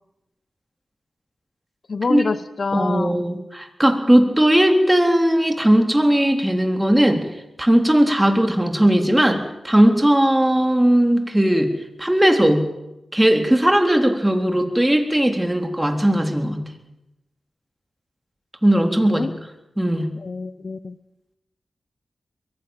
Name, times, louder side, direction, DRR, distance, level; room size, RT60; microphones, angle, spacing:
voice 1, 1.9-3.2 19.1-19.3 20.2-21.0, left 4 dB, 60° left, 16 dB, 0.9 m, -26 dB
voice 2, 2.7-7.2 7.6-11.7 12.0-12.6 13.1-16.6 18.6-19.3 19.8-20.1, right 1 dB, 10° right, 6 dB, 3.7 m, -18 dB
22.5 x 16.0 x 9.1 m, 0.92 s
cardioid pair, 50°, 0 cm